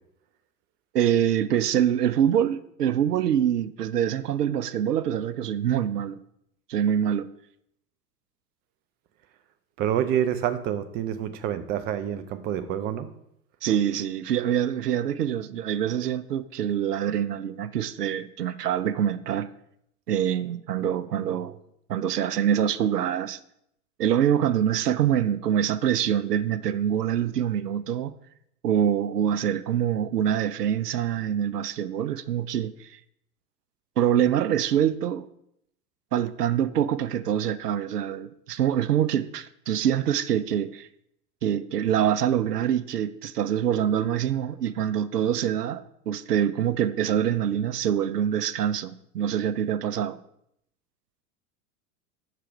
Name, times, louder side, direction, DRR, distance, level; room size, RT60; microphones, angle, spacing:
voice 1, 0.9-6.2 6.7-7.3 13.6-19.5 20.1-21.6 21.9-23.4 24.0-28.1 28.6-33.0 34.0-35.3 36.1-40.9 41.4-50.2, right 9 dB, 85° right, 0.5 m, -25 dB
voice 2, 9.8-13.1, right 10 dB, 25° right, 0.4 m, -27 dB
6.6 x 4.9 x 4.6 m
figure-of-eight pair, 85°, 46 cm